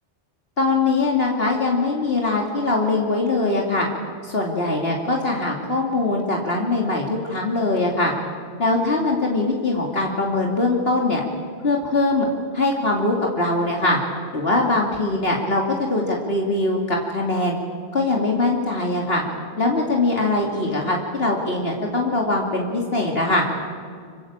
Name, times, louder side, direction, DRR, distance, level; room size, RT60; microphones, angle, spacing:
voice 1, 0.6-3.9 4.2-8.1 8.6-11.2 11.6-12.3 12.5-14.0 14.3-17.6 17.9-19.2 19.6-23.4, left 2 dB, 55° left, 0 dB, 2.9 m, -22 dB
26.5 x 23.0 x 8.8 m, 2.2 s
omnidirectional pair, 1.2 m